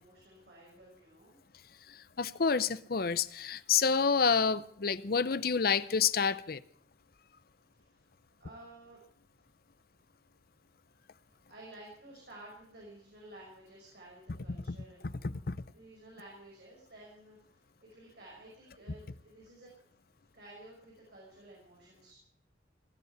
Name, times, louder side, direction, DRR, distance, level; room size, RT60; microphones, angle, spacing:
voice 1, 0.0-1.4 7.9-8.0 8.4-9.0 11.2-15.2 15.7-19.7 20.3-22.2, right 1 dB, 65° right, 5.7 m, -53 dB
voice 2, 1.9-6.6 14.7-14.8 15.2-15.6, left 6 dB, 55° left, 0.6 m, -29 dB
18.5 x 8.4 x 8.1 m
head